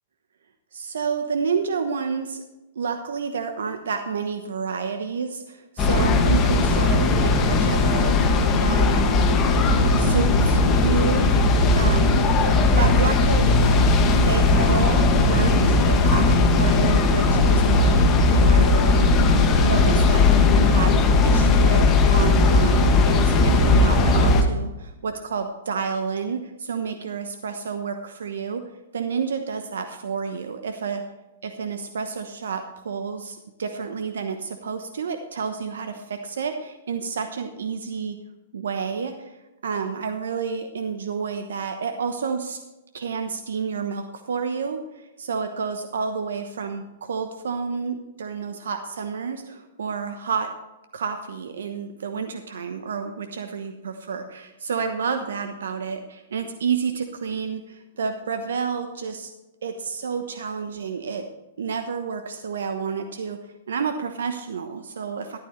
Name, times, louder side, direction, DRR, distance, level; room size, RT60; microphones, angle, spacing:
voice 1, 0.7-2.4 2.7-8.2 8.5-9.1 9.9-11.3 11.7-12.4 12.8-13.8 14.3-19.1 19.6-31.0 31.4-38.2 38.5-39.4 39.6-42.6 42.9-50.5 50.9-59.3 59.6-61.2 61.6-63.4 63.7-65.4, right 5 dB, 75° right, 7 dB, 1.0 m, -30 dB
sound 1, 5.8-24.4, left 3 dB, 30° left, 2.0 m, -18 dB
13.5 x 11.5 x 3.2 m, 1.0 s
hypercardioid pair, 115°, 0 cm